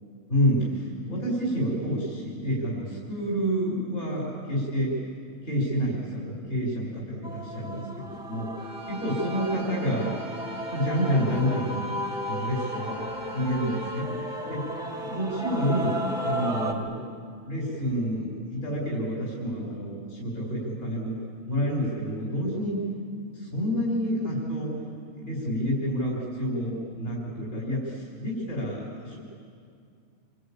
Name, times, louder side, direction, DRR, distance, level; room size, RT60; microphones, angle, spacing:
voice 1, 0.3-4.9 5.4-8.5 8.9-10.1 10.7-11.8 12.2-13.0 13.3-14.1 14.5-17.1 17.4-21.1 21.5-22.8 23.3-24.7 25.2-29.2, equal, 50° left, -3 dB, 5.0 m, -28 dB
Male singing / Female singing / Musical instrument, 7.2-16.7, equal, 5° right, 2.2 m, -34 dB
Bowed string instrument, 8.6-14.1, right 5 dB, 60° right, 2.8 m, -48 dB
27.5 x 24.0 x 8.8 m, 2.3 s
omnidirectional pair, 1.5 m